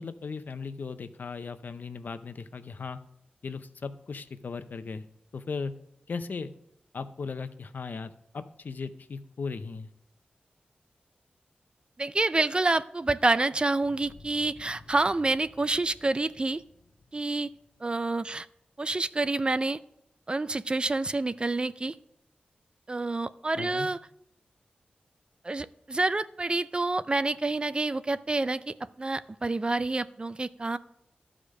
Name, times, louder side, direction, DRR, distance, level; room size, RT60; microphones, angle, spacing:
voice 1, 0.0-3.0 3.4-5.0 5.3-5.7 6.1-6.5 6.9-9.9 23.6-23.9, left 4 dB, 70° left, 11 dB, 0.6 m, -37 dB
voice 2, 12.0-16.6 17.1-17.5 17.8-18.5 18.8-19.8 20.3-22.0 22.9-24.0 25.4-30.8, right 2 dB, 30° right, 15 dB, 0.4 m, -28 dB
sound 1, 13.9-18.6, left 2 dB, 50° left, 1.0 m, -55 dB
12.5 x 5.0 x 6.3 m, 0.79 s
wide cardioid pair, 75°, 3 cm